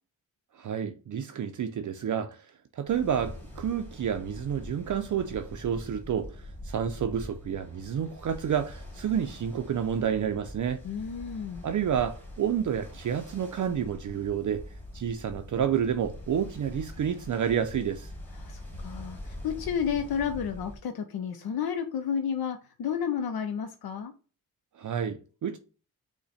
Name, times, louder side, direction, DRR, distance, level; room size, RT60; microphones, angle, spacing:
voice 1, 0.5-10.8 11.6-14.7 14.9-18.1 24.8-25.6, right 8 dB, 55° right, 0.5 m, -30 dB
Ocean, 2.9-20.8, left 1 dB, 5° left, 1.5 m, -44 dB
voice 2, 10.8-11.6 18.3-24.1, left 7 dB, 80° left, 0.6 m, -31 dB
5.6 x 2.2 x 4.1 m
wide cardioid pair, 105°, 37 cm